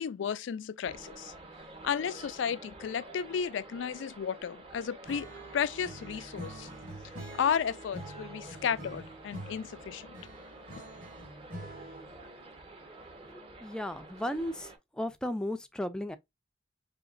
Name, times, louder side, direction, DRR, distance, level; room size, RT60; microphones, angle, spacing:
voice 1, 0.0-1.3 1.8-5.3 5.5-6.7 7.4-10.1, left 7 dB, 75° left, 0.3 m, -33 dB
sound 1, 0.8-14.8, right 2 dB, 30° right, 0.8 m, -49 dB
Acoustic guitar / Strum, 5.0-12.2, equal, 45° right, 1.9 m, -46 dB
voice 2, 13.3-14.7 15.0-16.2, left 1 dB, 5° left, 0.4 m, -35 dB
4.9 x 2.8 x 2.4 m
head